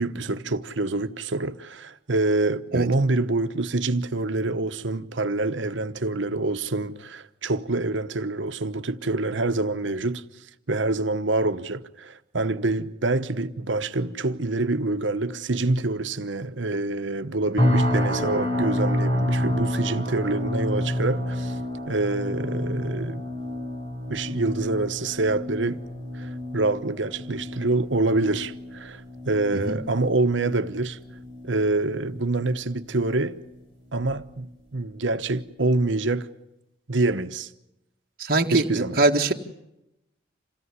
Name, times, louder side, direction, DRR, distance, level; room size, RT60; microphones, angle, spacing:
voice 1, 0.0-10.2 10.7-21.6 21.9-23.2 24.1-25.8 26.1-31.0 31.4-33.4 33.9-36.3 36.9-37.5 38.5-39.0, right 2 dB, 90° right, 1.1 m, -26 dB
sound 1, 17.6-32.8 33.1-33.5 34.0-34.2, left 1 dB, 30° left, 5.1 m, -29 dB
voice 2, 38.2-39.3, right 2 dB, 50° right, 1.9 m, -22 dB
27.5 x 17.0 x 9.7 m
head